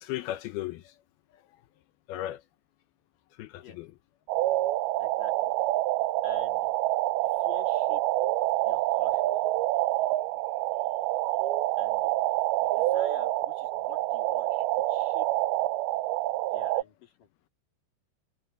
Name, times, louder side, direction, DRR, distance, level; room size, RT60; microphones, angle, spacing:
voice 1, 0.0-0.9 2.1-2.4 3.4-3.9, left 14 dB, 80° left, 2.3 m, -36 dB
sound 1, 4.3-16.8, right 17 dB, 90° right, 2.1 m, -27 dB
voice 2, 5.0-5.5 6.2-6.7 7.3-8.0 8.6-9.3 11.8-12.2 12.6-14.5 14.9-15.3 16.5-17.3, left 6 dB, 50° left, 4.3 m, -48 dB
omnidirectional pair, 5.3 m